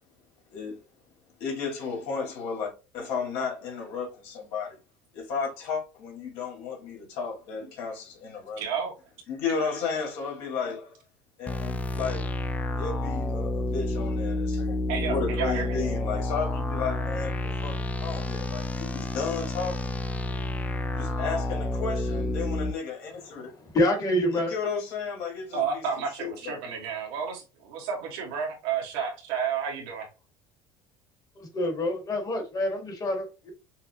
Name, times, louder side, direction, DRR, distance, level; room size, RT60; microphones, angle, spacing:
voice 1, 0.5-0.8 1.4-4.8 5.1-8.6 9.3-11.0 11.4-12.5 12.8-19.9 20.9-23.5 24.3-26.6, left 5 dB, 75° left, 1.9 m, -33 dB
voice 2, 8.6-8.9 14.9-15.6 25.5-30.1, right 6 dB, 85° right, 1.4 m, -31 dB
sound 1, 11.5-22.7, left 1 dB, 10° left, 0.4 m, -30 dB
voice 3, 23.6-24.5 31.4-33.5, left 1 dB, 35° left, 1.4 m, -27 dB
5.5 x 2.0 x 2.8 m
supercardioid pair, 110°, 12 cm